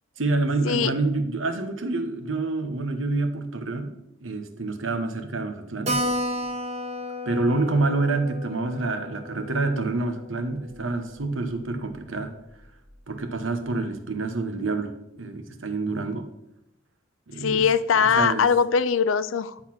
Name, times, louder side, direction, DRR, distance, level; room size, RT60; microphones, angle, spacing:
voice 1, 0.2-4.0 4.2-6.0 7.3-12.3 13.1-16.3 17.3-17.7 18.2-18.4, right 3 dB, 80° right, 8 dB, 1.1 m, -27 dB
Keyboard (musical), 5.9-10.9 11.2-11.3 11.6-11.7 11.9-12.0 12.6-12.9, left 1 dB, 35° right, 1.8 m, -32 dB
voice 2, 17.4-19.6, left 6 dB, 80° left, 15 dB, 0.5 m, -21 dB
10.5 x 4.1 x 5.9 m, 0.83 s
head